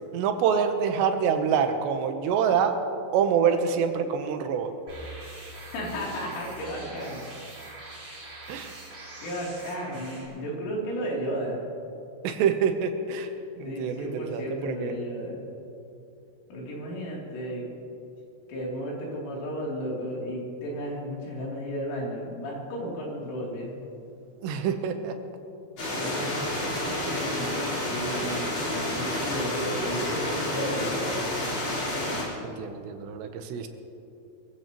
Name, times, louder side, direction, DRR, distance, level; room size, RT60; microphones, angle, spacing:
voice 1, 0.1-2.8 3.1-4.7 8.5-8.8 12.2-13.3 13.6-14.9 24.4-25.2 26.0-26.2 32.4-33.7, right 7 dB, 75° right, 6 dB, 2.8 m, -26 dB
sound 1, 4.9-10.2, right 2 dB, 35° right, 5.4 m, -43 dB
voice 2, 5.5-7.3 9.2-11.6 13.6-15.4 16.5-17.6 18.5-23.8 25.9-31.2, equal, 80° left, -4 dB, 5.7 m, -34 dB
sound 2, 25.8-32.2, left 1 dB, 35° left, 4.6 m, -29 dB
24.0 x 15.5 x 3.0 m, 2.7 s
omnidirectional pair, 5.5 m